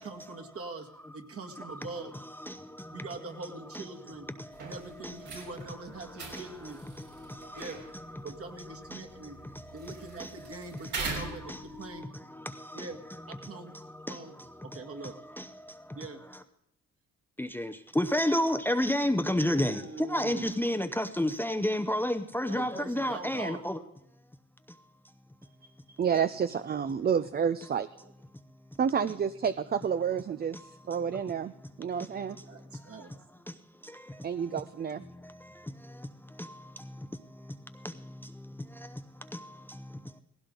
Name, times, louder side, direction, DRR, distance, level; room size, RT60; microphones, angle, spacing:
voice 1, 0.0-2.1 2.9-4.3 4.6-6.8 7.6-7.8 8.2-9.4 9.7-12.1 12.7-13.7 14.1-14.3 14.6-15.2 15.9-16.2 19.5-20.5 22.5-23.6 28.0-28.1 32.1-33.1, right 3 dB, 50° right, 2.0 m, -43 dB
voice 2, 1.6-1.9 2.1-3.9 4.2-5.5 6.0-10.8 11.2-16.4 17.4-23.8 24.7-24.8 30.5-31.2 31.6-31.7 32.0-33.2 33.5-34.6 35.1-40.2, left 1 dB, 5° left, 0.7 m, -34 dB
sound 1, 4.5-12.0, right 3 dB, 75° right, 5.2 m, -42 dB
voice 3, 25.9-27.9 28.8-31.5 31.8-32.4 34.2-35.0, right 7 dB, 30° right, 0.5 m, -29 dB
18.0 x 16.5 x 3.9 m
cardioid pair, 90°, 30 cm